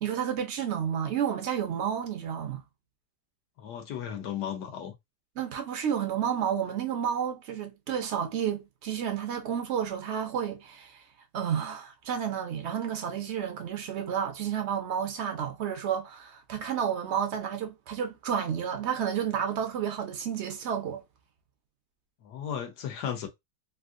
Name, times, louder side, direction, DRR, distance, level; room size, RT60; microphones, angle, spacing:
voice 1, 0.0-2.6 5.4-11.0 11.3-21.0, right 8 dB, 65° right, 0.6 m, -31 dB
voice 2, 3.6-4.9 22.2-23.3, left 9 dB, 80° left, 1.4 m, -35 dB
3.4 x 2.6 x 2.4 m
omnidirectional pair, 1.7 m